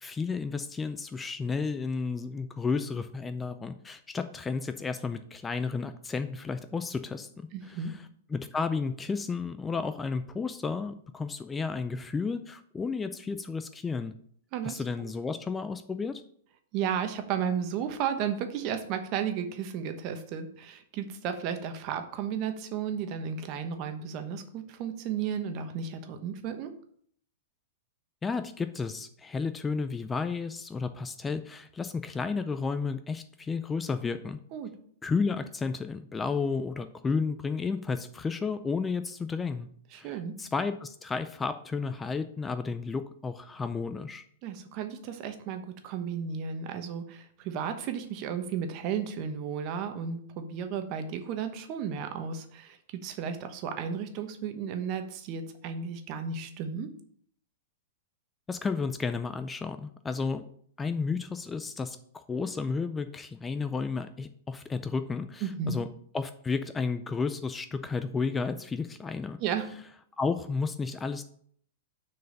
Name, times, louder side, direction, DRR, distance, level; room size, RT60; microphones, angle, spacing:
voice 1, 0.0-7.3 7.7-7.8 8.3-14.1 14.6-16.2 28.2-34.4 35.0-39.7 39.9-44.2 58.5-60.4 60.8-65.9 66.1-69.4 70.2-71.2, left 4 dB, 15° left, 10 dB, 0.5 m, -32 dB
voice 2, 7.5-7.9 14.5-15.1 16.7-26.7 34.5-34.7 39.9-40.4 44.4-56.9 65.4-65.8 69.4-69.7, right 7 dB, 45° right, 7 dB, 1.2 m, -34 dB
6.2 x 4.7 x 6.6 m, 0.62 s
hypercardioid pair, 115°, 0 cm